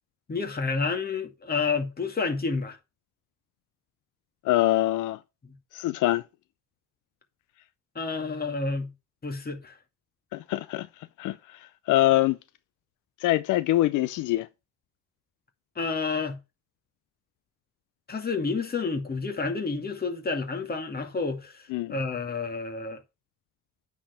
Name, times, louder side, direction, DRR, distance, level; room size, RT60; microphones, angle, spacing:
voice 1, 0.3-2.8 8.0-8.9 9.2-9.8 15.8-16.4 18.1-23.0, left 4 dB, 30° left, 2.2 m, -30 dB
voice 2, 4.4-5.2 5.7-6.2 10.3-10.9 11.2-11.6 11.9-12.4 13.2-14.5 21.7-21.9, left 15 dB, 90° left, 0.6 m, -24 dB
9.0 x 4.6 x 6.9 m
cardioid pair, 90°, 30 cm